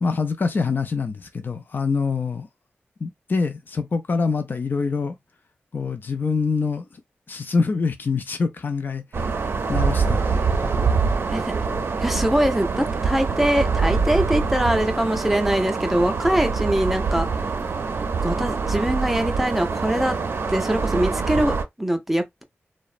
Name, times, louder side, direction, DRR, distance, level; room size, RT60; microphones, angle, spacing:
voice 1, 0.0-2.5 3.0-5.1 5.7-6.8 7.3-9.3 9.7-10.8, left 4 dB, 50° left, 0.4 m, -25 dB
sound 1, 9.1-21.6, right 4 dB, 70° right, 0.5 m, -24 dB
voice 2, 12.0-17.3 18.2-20.2 20.5-22.4, right 1 dB, 5° right, 0.5 m, -23 dB
3.0 x 2.0 x 2.3 m
wide cardioid pair, 110°, 4 cm